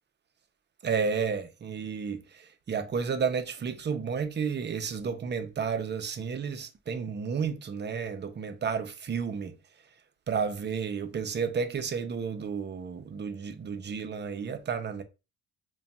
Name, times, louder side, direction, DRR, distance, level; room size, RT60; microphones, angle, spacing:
voice 1, 0.8-9.5 10.3-15.0, right 6 dB, 35° right, 0.6 m, -32 dB
2.4 x 2.3 x 4.0 m
cardioid pair, 90°, 30 cm